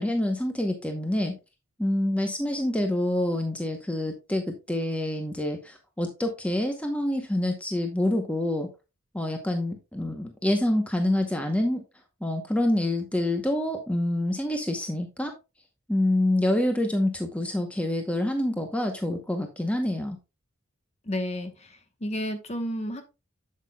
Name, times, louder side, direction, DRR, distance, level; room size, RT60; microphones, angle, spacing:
voice 1, 0.0-1.3 1.8-8.7 9.1-11.8 12.2-15.3 15.9-20.2, left 1 dB, 5° left, 4 dB, 0.8 m, -27 dB
voice 2, 21.1-23.0, equal, 30° left, 7 dB, 1.0 m, -32 dB
8.1 x 7.6 x 2.2 m, 0.27 s
head